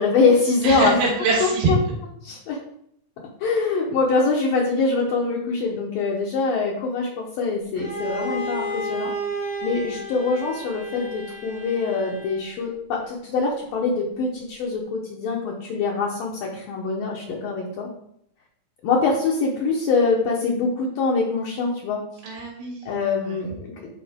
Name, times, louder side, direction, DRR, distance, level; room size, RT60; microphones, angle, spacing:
voice 1, 0.0-1.0 1.7-1.8 2.2-2.6 3.4-9.1 9.6-17.9 18.8-22.0 22.9-23.9, left 4 dB, 80° left, -2 dB, 2.0 m, -24 dB
voice 2, 0.6-1.7 22.2-23.4, right 3 dB, 85° right, -5 dB, 5.0 m, -25 dB
Bowed string instrument, 7.8-12.6, equal, 30° right, 0.7 m, -32 dB
12.5 x 4.5 x 3.6 m, 0.72 s
omnidirectional pair, 5.5 m